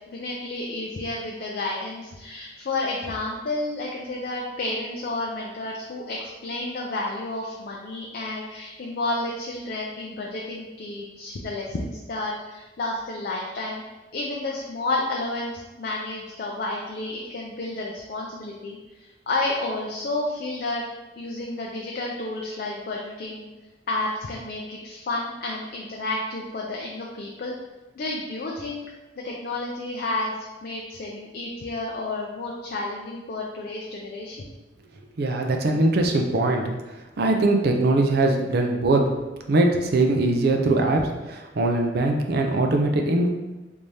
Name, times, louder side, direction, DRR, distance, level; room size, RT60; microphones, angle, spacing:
voice 1, 0.1-13.8 14.1-20.8 21.2-23.5 23.9-27.6 28.0-28.8 29.2-30.3 30.6-34.5, left 2 dB, 50° left, -2 dB, 0.4 m, -31 dB
voice 2, 35.2-36.7 37.2-39.1 39.5-43.3, right 2 dB, 55° right, 3 dB, 0.4 m, -21 dB
3.4 x 2.7 x 3.2 m, 1.1 s
head